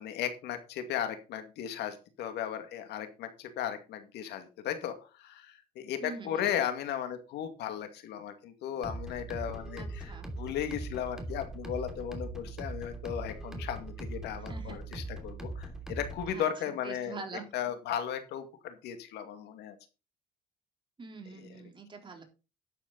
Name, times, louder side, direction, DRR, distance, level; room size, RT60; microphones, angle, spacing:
voice 1, 0.0-17.2 17.5-19.8 21.3-21.6, left 9 dB, 80° left, 7 dB, 2.3 m, -36 dB
voice 2, 6.0-6.5 9.7-10.3 14.5-14.8 16.3-17.5 21.0-22.2, right 4 dB, 30° right, 3 dB, 3.9 m, -44 dB
sound 1, 8.8-16.3, right 2 dB, 5° right, 2.9 m, -40 dB
11.5 x 8.7 x 4.1 m, 0.31 s
cardioid pair, 110°, 17 cm